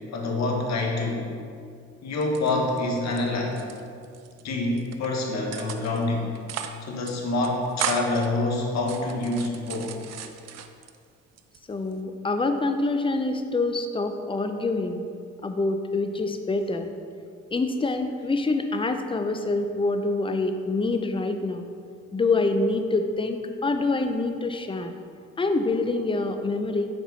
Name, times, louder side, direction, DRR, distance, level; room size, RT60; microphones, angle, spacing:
voice 1, 0.1-1.3 2.0-3.7 4.4-6.3 6.8-10.0, left 2 dB, 60° left, 0 dB, 1.2 m, -26 dB
sound 1, 2.1-3.2 3.5-4.4 4.8-5.1 5.5-6.0 6.3-6.8 7.0-7.1 7.4-8.3 8.8-11.0 11.4-12.0, right 8 dB, 60° right, 0.5 m, -35 dB
voice 2, 11.7-15.0 15.4-16.9 17.5-21.7 22.1-24.9 25.4-26.9, left 3 dB, 20° left, 7 dB, 0.4 m, -26 dB
6.3 x 4.3 x 4.0 m, 2.3 s
cardioid pair, 90°, 30 cm